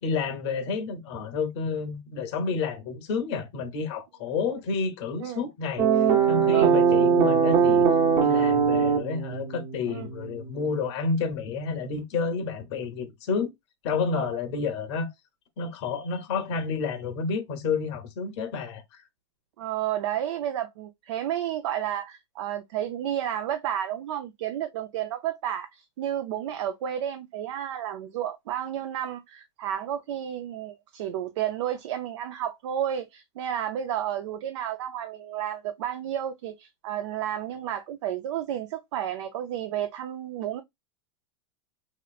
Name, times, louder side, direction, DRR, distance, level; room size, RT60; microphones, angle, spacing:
voice 1, 0.0-7.8 8.2-13.5 13.8-15.1 15.6-19.0, left 5 dB, 65° left, 1.0 m, -30 dB
sound 1, 5.8-10.8, right 6 dB, 30° right, 0.8 m, -22 dB
voice 2, 19.6-40.6, right 11 dB, 75° right, 0.5 m, -31 dB
3.0 x 3.0 x 2.4 m
supercardioid pair, 125°, 15 cm